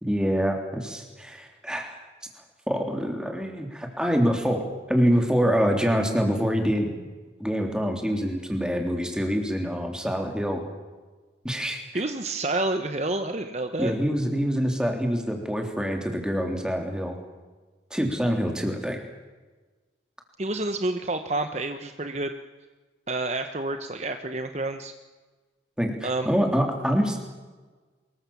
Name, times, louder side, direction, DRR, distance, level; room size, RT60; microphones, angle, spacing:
voice 1, 0.0-1.9 2.7-6.9 7.4-10.6 11.4-11.8 13.8-17.1 17.9-19.0 25.8-27.2, equal, 5° right, 3 dB, 3.3 m, -25 dB
voice 2, 11.9-13.9 20.4-22.3 23.1-24.9 26.0-26.3, right 2 dB, 35° right, 7 dB, 1.0 m, -29 dB
24.5 x 22.0 x 7.2 m, 1.3 s
head